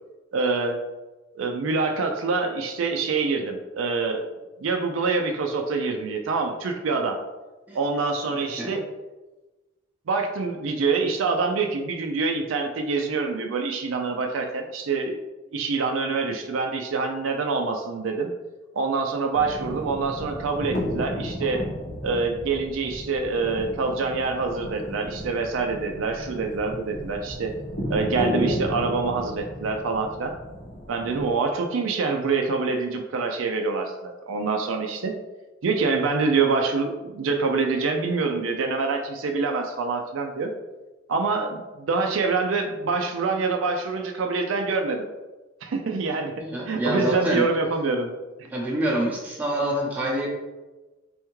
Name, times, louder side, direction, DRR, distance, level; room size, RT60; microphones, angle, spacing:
voice 1, 0.3-0.8 1.3-4.2 4.6-7.2 7.7-8.8 10.1-15.2 15.5-18.3 18.7-21.6 22.0-27.5 27.9-30.3 30.9-35.1 35.6-40.5 41.1-45.1 45.6-46.3 46.6-48.1 48.4-48.5, right 4 dB, 85° right, 4 dB, 0.4 m, -26 dB
voice 2, 8.3-8.7 46.4-47.4 48.5-50.3, right 1 dB, 10° right, -5 dB, 0.7 m, -26 dB
sound 1, 19.3-31.3, equal, 85° left, 1.5 m, -33 dB
3.5 x 3.4 x 3.1 m, 1.1 s
head